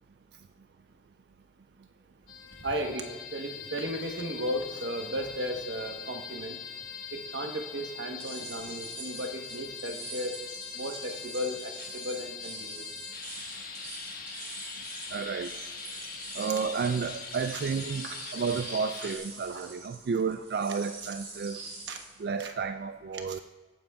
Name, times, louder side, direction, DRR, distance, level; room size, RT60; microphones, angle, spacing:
sound 1, 2.3-19.2, left 6 dB, 50° left, 1.4 m, -42 dB
voice 1, 2.6-6.6 7.1-10.3 10.7-12.9 18.3-18.4 19.5-19.6 21.9-22.0 22.4-22.5 23.1-23.4, equal, 75° right, 4 dB, 1.1 m, -35 dB
sound 2, 8.2-22.2, right 3 dB, 30° right, 2.4 m, -45 dB
voice 2, 15.1-15.6 16.4-21.6 22.2-23.4, right 5 dB, 55° right, 9 dB, 0.3 m, -31 dB
20.0 x 9.0 x 2.3 m, 1.4 s
head